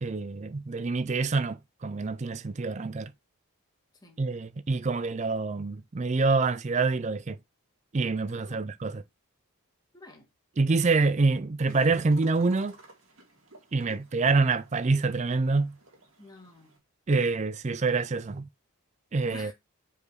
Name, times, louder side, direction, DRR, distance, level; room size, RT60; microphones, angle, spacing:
voice 1, 0.0-3.1 4.2-7.4 7.9-9.0 10.6-12.8 13.7-15.8 17.1-18.5 19.1-19.5, right 3 dB, 30° right, 0.4 m, -26 dB
voice 2, 8.3-8.6 9.9-10.3 16.2-16.8 19.2-19.5, left 1 dB, 20° left, 1.6 m, -49 dB
sound 1, 11.7-16.8, right 2 dB, 65° right, 2.3 m, -54 dB
5.0 x 4.9 x 4.7 m
head